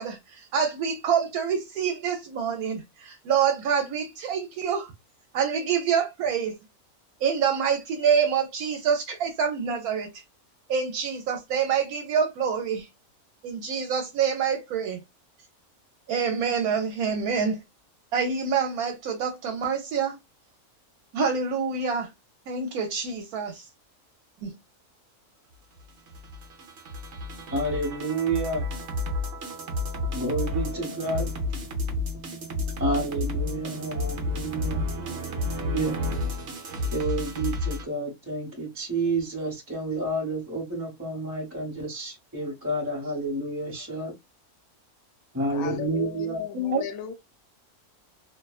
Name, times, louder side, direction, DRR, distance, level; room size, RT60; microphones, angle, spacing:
voice 1, 0.0-4.9 5.3-6.6 7.2-10.1 10.7-12.9 13.4-15.0 16.1-17.6 18.1-20.2 21.1-22.1 22.5-23.6 24.4-24.5 46.5-46.8, right 6 dB, 80° right, 1.1 m, -26 dB
sound 1, 25.9-37.8, left 2 dB, 55° right, 0.9 m, -31 dB
voice 2, 27.5-28.6 30.1-31.3 32.8-35.1 35.7-36.0 36.9-44.1 45.3-46.4, right 2 dB, 10° right, 0.8 m, -30 dB
voice 3, 45.5-47.1, left 9 dB, 75° left, 1.0 m, -35 dB
2.6 x 2.2 x 2.3 m
omnidirectional pair, 1.6 m